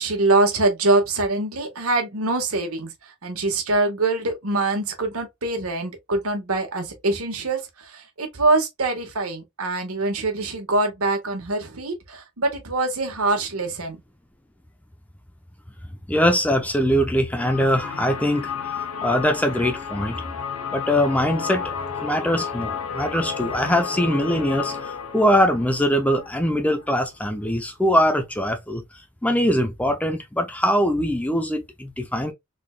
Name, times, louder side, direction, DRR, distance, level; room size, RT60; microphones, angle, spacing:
voice 1, 0.0-2.9 3.2-14.0, right 2 dB, 80° right, 1.4 m, -24 dB
voice 2, 16.1-20.2 20.7-21.6 22.0-28.8 29.2-32.3, equal, 5° left, 0.5 m, -22 dB
sound 1, 17.4-27.1, left 6 dB, 85° left, 0.8 m, -32 dB
3.8 x 3.5 x 2.3 m
head